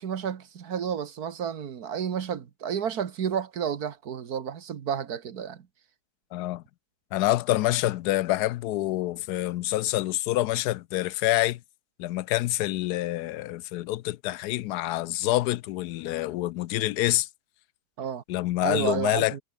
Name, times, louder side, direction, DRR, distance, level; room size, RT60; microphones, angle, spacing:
voice 1, 0.0-5.6 18.0-18.2 18.6-19.4, right 8 dB, 75° right, 1.8 m, -31 dB
voice 2, 6.3-6.6 7.1-11.6 12.0-17.3 18.3-19.4, left 16 dB, 90° left, 1.1 m, -27 dB
omnidirectional pair, 1.7 m